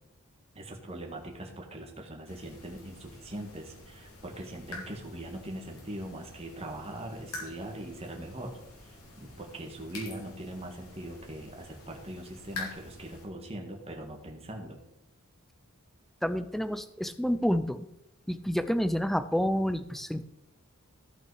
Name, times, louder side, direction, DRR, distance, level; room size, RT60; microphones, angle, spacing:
voice 1, 0.5-14.8, right 1 dB, 30° right, 1 dB, 1.7 m, -41 dB
sound 1, 2.3-13.3, left 3 dB, 90° left, 3.4 m, -47 dB
voice 2, 16.2-17.9 18.3-20.2, equal, ahead, 12 dB, 0.5 m, -29 dB
14.0 x 5.7 x 4.8 m, 0.83 s
head